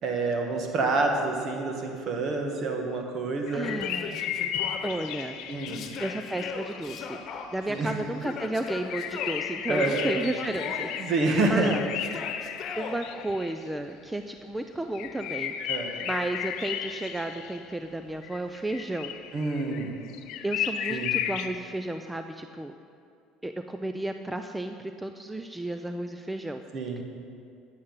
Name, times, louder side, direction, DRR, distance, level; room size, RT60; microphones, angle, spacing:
voice 1, 0.0-3.7 5.5-5.8 7.7-7.9 9.7-10.1 11.0-11.7 15.7-15.9 19.3-20.1 20.9-21.2 26.7-27.0, right 3 dB, 55° right, 2 dB, 1.7 m, -27 dB
sound 1, 3.5-7.8 8.6-13.7 14.9-17.7 18.2-21.5, left 10 dB, 65° left, 0.6 m, -34 dB
voice 2, 3.5-4.2 4.8-5.4 6.0-7.2 7.5-11.1 11.5-11.9 12.4-15.5 16.0-19.1 20.4-22.7 23.4-26.6, right 1 dB, 10° right, 7 dB, 0.5 m, -33 dB
Yell, 3.6-4.9 5.7-7.4 8.2-9.4 9.7-10.9 12.0-13.0, left 6 dB, 50° left, 1.1 m, -38 dB
9.8 x 8.7 x 5.6 m, 2.4 s
supercardioid pair, 90°, 0 cm